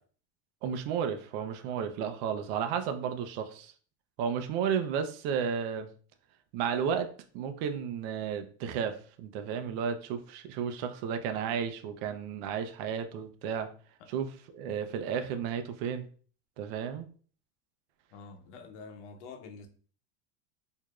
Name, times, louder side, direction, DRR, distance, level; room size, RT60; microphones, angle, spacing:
voice 1, 0.6-3.7 4.2-5.9 6.5-7.1 7.3-13.7 14.1-16.0 16.6-17.1, right 7 dB, 60° right, 8 dB, 0.6 m, -33 dB
voice 2, 18.1-19.7, left 4 dB, 85° left, 6 dB, 0.9 m, -47 dB
4.6 x 2.7 x 2.3 m, 0.42 s
supercardioid pair, 155°, 34 cm